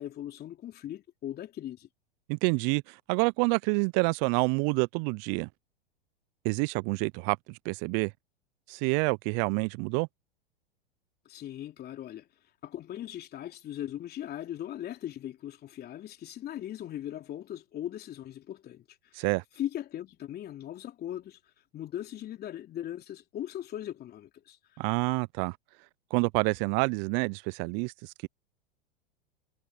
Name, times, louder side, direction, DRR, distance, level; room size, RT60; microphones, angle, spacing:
voice 1, 0.0-1.9 11.3-12.3 12.6-19.3 19.6-21.4 21.7-24.6, left 11 dB, 30° left, 3.4 m, -39 dB
voice 2, 2.3-5.5 6.4-8.1 8.7-10.1 19.1-19.4 24.8-25.6 26.1-28.3, right 34 dB, 45° right, 0.7 m, -28 dB
hypercardioid pair, 95°, 30 cm